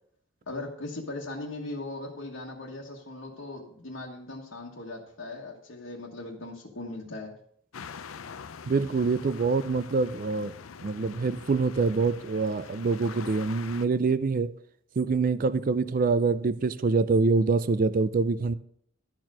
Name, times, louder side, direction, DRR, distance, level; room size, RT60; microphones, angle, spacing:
voice 1, 0.5-7.3, left 2 dB, 70° left, 1.4 m, -39 dB
sound 1, 7.7-13.9, left 6 dB, 90° left, 0.5 m, -44 dB
voice 2, 8.7-10.5 10.8-14.5 15.0-18.5, right 4 dB, 40° right, 0.4 m, -25 dB
12.0 x 4.5 x 6.1 m
head